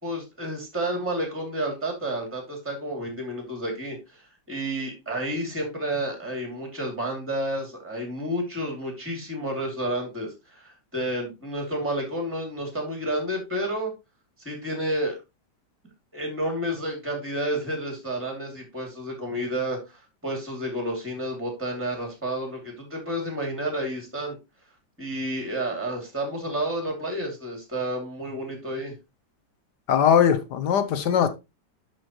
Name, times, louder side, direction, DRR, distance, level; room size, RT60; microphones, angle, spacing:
voice 1, 0.0-4.2 4.5-13.9 14.4-15.1 16.1-24.4 25.0-28.9, right 1 dB, 5° right, 2.5 m, -30 dB
voice 2, 29.9-31.3, left 8 dB, 65° left, 1.4 m, -20 dB
11.0 x 4.6 x 3.0 m
omnidirectional pair, 2.1 m